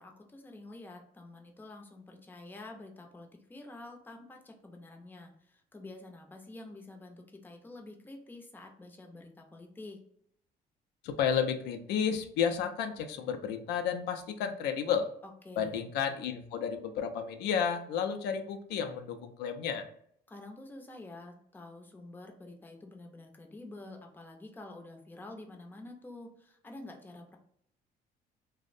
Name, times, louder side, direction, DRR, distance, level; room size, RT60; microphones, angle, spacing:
voice 1, 0.0-10.0 15.5-15.8 20.3-27.4, left 2 dB, 10° left, 3 dB, 0.5 m, -48 dB
voice 2, 11.0-15.1 15.6-19.9, left 7 dB, 80° left, 6 dB, 0.4 m, -32 dB
2.5 x 2.0 x 2.5 m, 0.67 s
cardioid pair, 110°, 17 cm